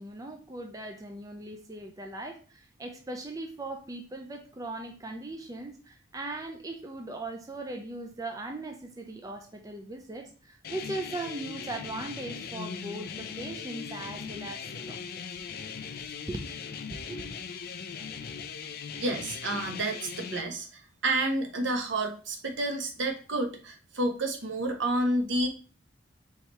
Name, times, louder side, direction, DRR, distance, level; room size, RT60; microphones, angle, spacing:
voice 1, 0.0-15.2 16.3-16.4 17.1-17.3, right 2 dB, 20° right, 3 dB, 0.4 m, -39 dB
sound 1, 10.6-20.4, left 6 dB, 50° left, 0.4 m, -39 dB
voice 2, 19.0-20.7 21.0-25.5, right 2 dB, 65° right, 4 dB, 0.9 m, -29 dB
4.7 x 3.3 x 3.0 m, 0.37 s
head